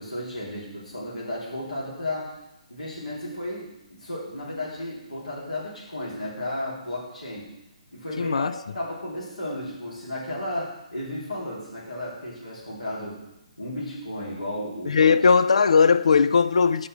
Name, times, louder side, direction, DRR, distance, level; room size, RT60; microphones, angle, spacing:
voice 1, 0.0-2.3 2.7-7.5 7.9-13.2 13.6-15.1, left 1 dB, 85° left, 3.1 m, -34 dB
voice 2, 8.2-8.6 14.9-16.9, left 5 dB, 65° left, 0.4 m, -18 dB
6.9 x 5.1 x 5.8 m
figure-of-eight pair, 140°, 4 cm